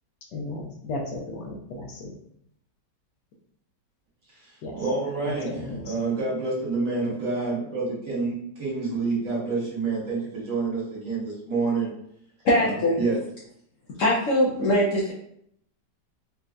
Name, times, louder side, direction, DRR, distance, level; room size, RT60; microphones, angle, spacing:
voice 1, 0.3-2.1 4.6-4.7 5.3-5.8, left 2 dB, 80° left, 0 dB, 1.3 m, -34 dB
voice 2, 4.7-11.9 12.6-12.7 13.0-13.2, right 3 dB, 50° right, -6 dB, 1.4 m, -28 dB
voice 3, 12.4-13.0 14.0-15.1, left 1 dB, 65° left, -6 dB, 0.8 m, -21 dB
4.2 x 2.5 x 2.2 m, 0.71 s
omnidirectional pair, 1.9 m